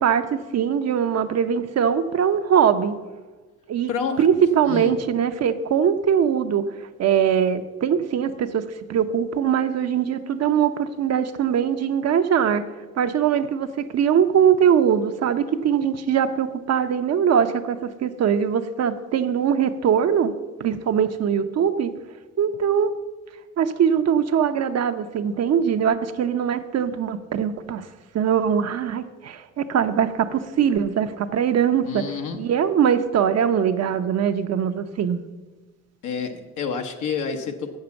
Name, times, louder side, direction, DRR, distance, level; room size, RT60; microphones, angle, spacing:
voice 1, 0.0-3.0 3.7-3.9 4.2-6.7 7.0-12.6 13.0-20.3 20.6-21.9 22.4-22.9 23.6-27.8 28.1-32.1 32.3-35.2, right 8 dB, 55° right, 8 dB, 0.7 m, -21 dB
voice 2, 3.9-4.3 4.7-4.9 31.8-32.4 36.0-37.8, left 6 dB, 80° left, 4 dB, 1.0 m, -28 dB
7.4 x 6.6 x 7.0 m, 1.3 s
cardioid pair, 90°, 30 cm